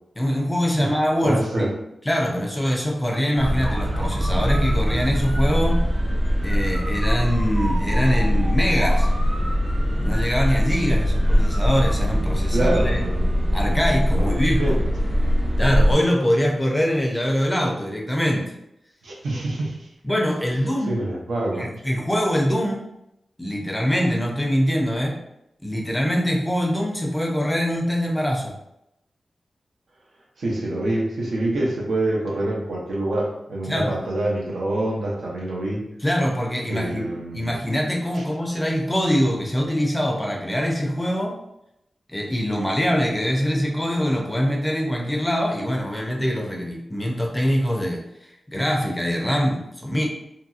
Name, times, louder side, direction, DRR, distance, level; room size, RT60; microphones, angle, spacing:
voice 1, 0.2-1.7 2.0-5.9 6.4-9.1 10.0-13.0 13.5-14.8 15.6-18.5 20.0-21.0 21.6-22.9 23.4-25.2 25.6-28.5 33.7-34.0 36.0-37.1 37.3-41.4 42.1-48.0 48.5-50.1, equal, 15° left, 0 dB, 0.4 m, -23 dB
voice 2, 1.2-1.7 12.5-13.3 14.2-14.8 19.0-19.9 20.9-21.7 30.4-35.9 36.7-37.6 38.1-38.2, right 1 dB, 80° right, -2 dB, 0.6 m, -26 dB
sound 1, 3.4-15.9, equal, 45° right, 0.9 m, -21 dB
2.9 x 2.7 x 2.4 m, 0.84 s
wide cardioid pair, 120°, 0 cm